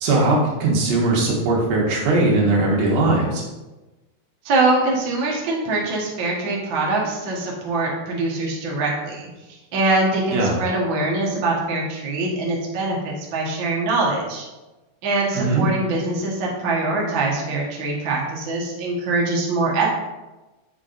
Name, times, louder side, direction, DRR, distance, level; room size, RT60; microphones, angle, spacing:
voice 1, 0.0-3.4 10.3-10.6 15.3-15.7, right 2 dB, 80° right, -3 dB, 3.2 m, -19 dB
voice 2, 4.4-9.3 9.7-14.4 15.0-19.8, right 2 dB, 65° right, -3 dB, 1.2 m, -23 dB
8.5 x 5.9 x 2.5 m, 1.1 s
omnidirectional pair, 4.2 m